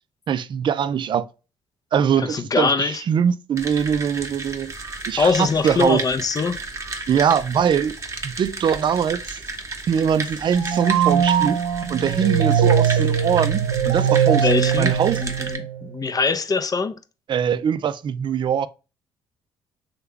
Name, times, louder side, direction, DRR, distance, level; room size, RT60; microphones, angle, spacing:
voice 1, 0.3-1.2 1.9-4.7 5.1-6.0 7.1-8.0 8.2-9.4 9.9-11.6 11.9-14.5 14.8-15.2 17.3-18.7, right 8 dB, 45° right, 0.3 m, -22 dB
voice 2, 2.2-3.0 5.2-6.6 14.4-14.9 15.2-17.0, left 4 dB, 30° left, 0.5 m, -22 dB
sound 1, 3.6-15.6, right 3 dB, 25° right, 0.9 m, -33 dB
sound 2, 10.5-15.9, right 8 dB, 75° right, 0.7 m, -21 dB
3.3 x 2.2 x 3.4 m
supercardioid pair, 60°, 12 cm